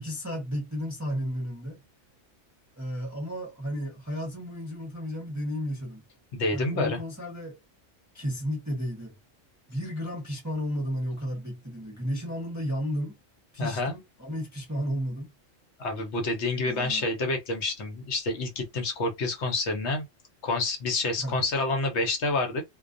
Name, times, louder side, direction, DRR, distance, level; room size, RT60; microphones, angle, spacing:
voice 1, 0.0-1.8 2.8-6.0 6.5-7.6 8.1-9.2 9.7-13.2 13.5-15.3 16.6-17.1 21.2-21.4, equal, 20° right, 0.5 m, -33 dB
voice 2, 6.3-7.0 13.6-13.9 15.8-20.0 20.4-22.6, left 2 dB, 65° left, 0.9 m, -28 dB
2.2 x 2.2 x 2.5 m
omnidirectional pair, 1.3 m